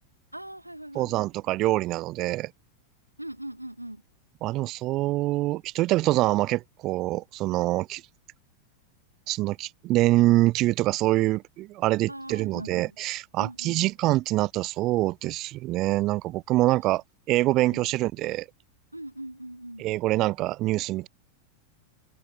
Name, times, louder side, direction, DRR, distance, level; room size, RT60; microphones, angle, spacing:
voice 1, 0.3-1.1 3.2-4.0 12.1-12.9 13.4-13.8 17.6-17.9 18.9-19.8, right 1 dB, 85° right, 1.4 m, -40 dB
voice 2, 0.9-2.5 4.4-8.0 9.3-18.5 19.8-21.1, right 17 dB, 35° right, 0.5 m, -25 dB
figure-of-eight pair, 90°, 0 cm